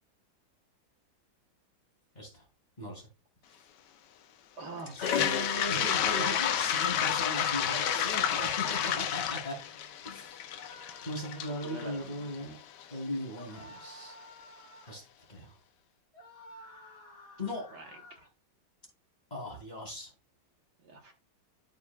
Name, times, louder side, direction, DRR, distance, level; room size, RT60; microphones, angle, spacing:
voice 1, 2.8-3.1 4.9-9.6 10.0-10.4 11.0-12.6 12.9-14.2 14.9-15.0 15.3-15.5 17.4-17.6 19.3-20.1, left 1 dB, 20° left, -1 dB, 3.0 m, -38 dB
voice 2, 4.6-6.4 7.2-7.3 8.0-8.1 8.4-9.0 9.5-9.7 11.2-12.3 17.7-18.0 20.8-21.1, right 3 dB, 60° right, 2 dB, 1.7 m, -44 dB
Toilet flush, 4.9-12.8, left 10 dB, 65° left, 1.2 m, -30 dB
sound 1, 8.3-9.3 10.5-12.1 13.3-15.0 16.1-18.3, left 1 dB, 45° left, 3.8 m, -52 dB
13.0 x 5.2 x 2.3 m, 0.30 s
omnidirectional pair, 2.2 m